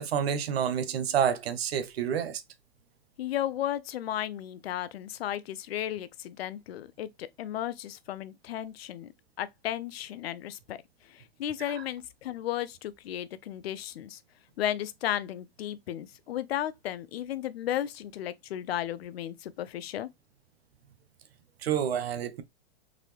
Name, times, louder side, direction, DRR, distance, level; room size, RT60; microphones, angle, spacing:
voice 1, 0.0-2.4 11.8-11.9 21.6-22.4, right 8 dB, 80° right, 0.8 m, -28 dB
voice 2, 3.2-9.1 9.4-10.8 11.0-14.2 14.6-20.1, left 11 dB, 80° left, 0.6 m, -34 dB
3.9 x 2.7 x 3.2 m
hypercardioid pair, 115°, 30 cm